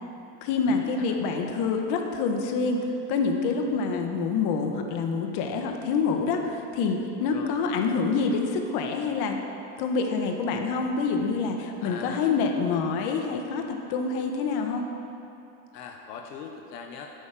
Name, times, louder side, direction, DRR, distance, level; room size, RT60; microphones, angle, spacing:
voice 1, 0.4-9.4 9.8-14.8, left 4 dB, 55° left, 3 dB, 1.7 m, -27 dB
voice 2, 11.8-12.4 15.7-17.1, left 6 dB, 80° left, 2 dB, 1.4 m, -40 dB
12.0 x 8.8 x 7.6 m, 2.8 s
supercardioid pair, 125°, 47 cm